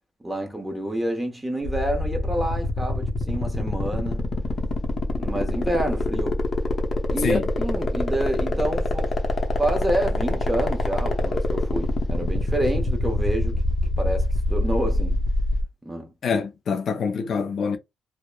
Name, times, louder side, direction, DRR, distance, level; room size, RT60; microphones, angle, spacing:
voice 1, 0.2-4.2 5.1-6.5 7.1-9.2 9.6-13.6 14.0-15.2 15.8-16.1, right 1 dB, 15° right, 0.9 m, -28 dB
sound 1, 1.6-15.6, left 2 dB, 35° left, 0.7 m, -25 dB
voice 2, 16.2-17.8, left 5 dB, 60° left, 0.4 m, -25 dB
2.9 x 2.0 x 2.2 m
cardioid pair, 90°, 0 cm